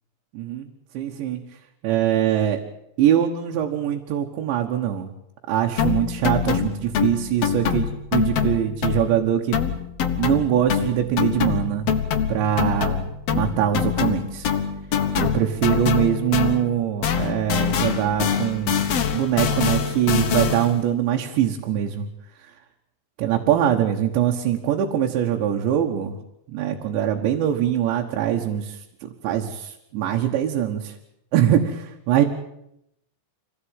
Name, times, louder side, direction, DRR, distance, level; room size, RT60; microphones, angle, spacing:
voice 1, 0.3-0.7 1.0-1.4 1.8-2.6 3.0-5.1 5.5-7.8 8.1-9.6 10.2-11.9 12.3-14.5 15.2-18.9 19.1-22.1 23.2-26.1 26.5-28.8 29.0-30.9 31.3-32.3, right 10 dB, 85° right, 1 dB, 3.7 m, -23 dB
sound 1, 5.8-9.2 9.5-16.8 17.0-20.8, left 7 dB, 75° left, 1.4 m, -24 dB
25.5 x 16.5 x 9.1 m, 0.81 s
omnidirectional pair, 5.1 m